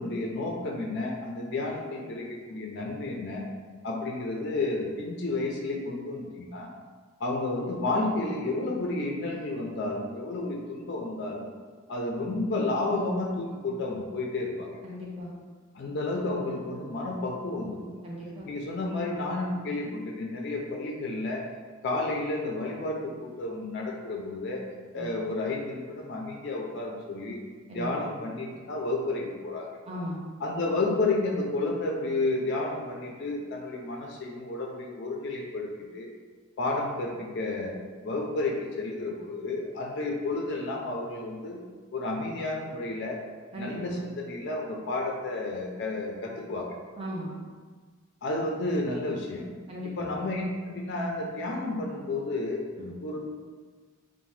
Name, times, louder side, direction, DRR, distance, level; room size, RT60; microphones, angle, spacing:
voice 1, 0.0-3.4 3.8-6.7 7.2-11.5 11.9-14.7 15.7-18.0 18.4-21.4 21.8-24.6 24.9-27.4 27.7-29.7 30.4-36.1 36.6-37.7 38.0-41.6 41.9-43.2 43.6-46.7 48.2-49.4 50.0-52.6 53.0-53.3, left 2 dB, 55° left, 0 dB, 0.4 m, -31 dB
voice 2, 14.8-15.3 18.0-18.5 24.9-25.2 27.7-28.1 29.9-30.2 43.5-44.0 47.0-47.3 49.7-50.1 52.8-52.9, equal, 30° right, -4 dB, 0.5 m, -37 dB
2.7 x 2.1 x 3.1 m, 1.5 s
head